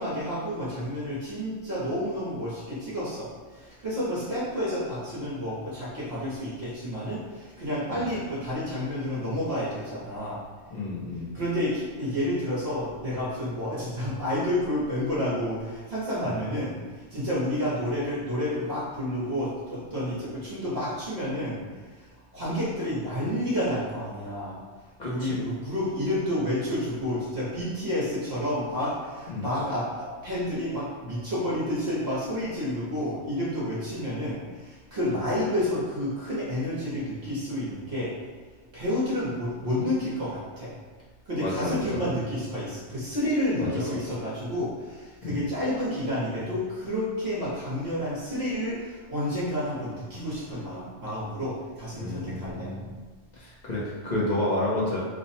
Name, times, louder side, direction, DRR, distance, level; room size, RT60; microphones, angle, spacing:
voice 1, 0.0-10.4 11.3-21.6 21.9-24.6 25.0-38.2 38.7-40.7 41.3-52.7, left 1 dB, 60° right, -8 dB, 1.1 m, -30 dB
voice 2, 10.7-11.3 16.2-16.4 25.0-25.4 29.3-29.5 41.4-41.8 43.6-43.9 45.2-45.4 51.9-52.9 53.3-55.0, left 1 dB, 40° left, -7 dB, 0.8 m, -30 dB
3.2 x 2.1 x 4.1 m, 1.4 s
omnidirectional pair, 1.3 m